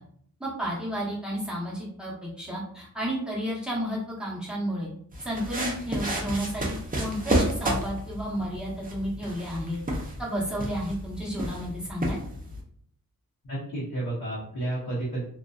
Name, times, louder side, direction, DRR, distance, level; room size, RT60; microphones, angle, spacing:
voice 1, 0.4-4.9 5.2-9.8 10.2-12.2, equal, ahead, -5 dB, 0.8 m, -32 dB
sound 1, 5.1-12.6, right 1 dB, 25° right, 0.5 m, -31 dB
voice 2, 13.4-15.2, right 2 dB, 80° left, -7 dB, 0.8 m, -31 dB
2.5 x 2.2 x 2.3 m, 0.65 s
wide cardioid pair, 95°, 36 cm